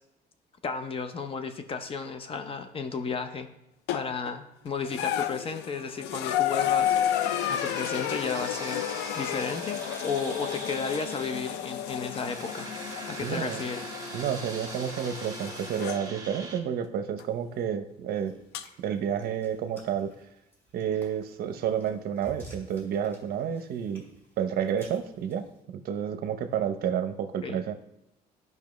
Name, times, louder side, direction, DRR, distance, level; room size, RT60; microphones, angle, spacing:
voice 1, 0.6-3.5 3.9-7.1 7.5-8.9 9.2-12.7 13.1-13.8 27.4-27.6, left 5 dB, 35° left, 8 dB, 0.7 m, -33 dB
sound 1, 3.9-4.3 4.8-16.0 17.2-17.3 18.5-18.6, left 11 dB, 90° left, 0.4 m, -32 dB
sound 2, 6.3-16.6, right 3 dB, 20° right, 1.3 m, -42 dB
voice 2, 13.2-13.6 14.1-18.3 18.8-20.1 20.7-24.0 24.4-27.7, right 8 dB, 65° right, 9 dB, 0.6 m, -30 dB
sound 3, 18.2-25.6, right 1 dB, 15° left, 2.7 m, -52 dB
10.5 x 5.3 x 3.1 m, 0.84 s
cardioid pair, 110°, 17 cm